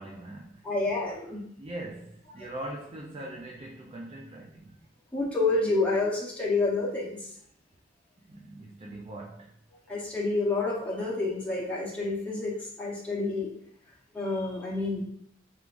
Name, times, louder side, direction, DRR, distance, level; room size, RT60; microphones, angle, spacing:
voice 1, 0.0-0.6 1.6-4.8 8.2-9.5, right 1 dB, 30° right, 0 dB, 0.4 m, -41 dB
voice 2, 0.6-1.4 5.1-7.3 9.9-13.5 14.1-15.0, left 3 dB, 5° left, -7 dB, 0.9 m, -28 dB
4.6 x 3.6 x 2.5 m, 0.66 s
head